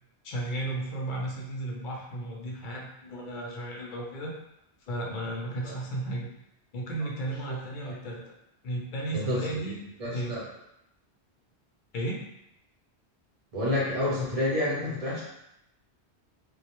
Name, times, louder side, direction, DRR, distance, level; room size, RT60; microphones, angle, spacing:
voice 1, 0.2-4.3 4.9-6.3 6.7-8.3 8.6-9.7 10.0-10.3 11.9-12.2, right 1 dB, 60° left, -2 dB, 0.6 m, -34 dB
voice 2, 9.1-9.6 10.0-10.4 13.5-15.2, left 1 dB, 40° right, -7 dB, 0.7 m, -29 dB
2.1 x 2.0 x 2.8 m, 0.83 s
omnidirectional pair, 1.1 m